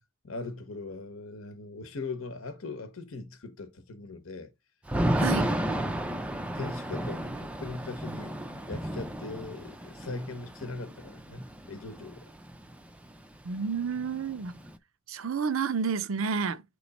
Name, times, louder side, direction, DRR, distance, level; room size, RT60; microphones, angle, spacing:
voice 1, 0.2-4.5 5.3-6.3 6.5-12.3, left 3 dB, 70° left, 0.9 m, -40 dB
Thunder / Rain, 4.9-12.7 13.0-13.1 13.4-14.7, right 1 dB, 5° right, 0.4 m, -32 dB
voice 2, 5.1-5.5 13.4-14.6 15.1-16.6, right 6 dB, 70° right, 0.5 m, -30 dB
7.8 x 3.1 x 4.0 m
head